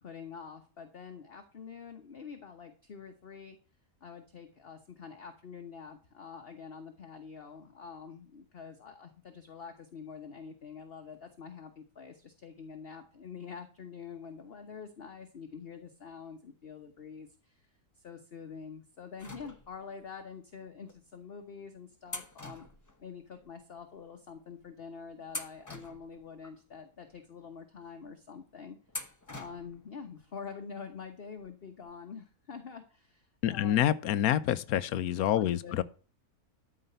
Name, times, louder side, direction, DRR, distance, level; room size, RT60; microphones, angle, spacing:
voice 1, 0.0-3.6 4.0-17.7 18.0-22.7 23.0-28.8 29.3-34.0 35.3-35.8, left 6 dB, 45° left, 1.2 m, -46 dB
Button Click Switch Valve Water, 19.2-20.0 20.9-21.0 22.1-23.5 23.8-23.9 24.6-24.8 25.3-26.6 27.1-27.2 28.9-29.9 30.2-30.3 31.4-31.5 31.8-31.9, left 2 dB, 15° left, 0.9 m, -44 dB
voice 2, 33.4-35.8, left 11 dB, 75° left, 1.2 m, -27 dB
13.0 x 5.0 x 6.7 m
omnidirectional pair, 1.6 m